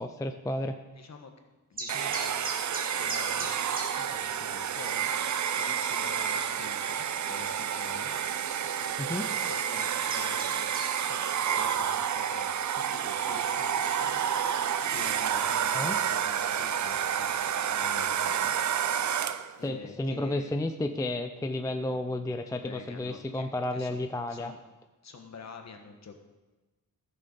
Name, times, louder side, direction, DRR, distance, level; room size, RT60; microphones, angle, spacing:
voice 1, 0.0-0.8 9.0-9.3 15.7-16.0 19.6-24.5, left 1 dB, 10° left, 7 dB, 0.4 m, -32 dB
voice 2, 0.9-1.3 1.7-2.5 2.8-5.1 5.5-8.1 9.4-10.8 11.0-12.5 12.7-14.2 14.9-17.5 17.7-18.5 19.6-20.6 22.6-24.0 24.3-24.6 25.0-26.2, left 4 dB, 50° left, 5 dB, 1.4 m, -47 dB
sound 1, 1.8-3.9 4.2-4.3 4.8-4.9 5.1-5.6 6.2-6.3 7.6-7.7 8.5-8.7 9.3-10.9, right 2 dB, 25° right, 2.0 m, -38 dB
Domestic sounds home sounds, 1.9-19.6, right 8 dB, 55° right, 0.5 m, -29 dB
14.5 x 6.7 x 5.4 m, 1.2 s
wide cardioid pair, 175°, 36 cm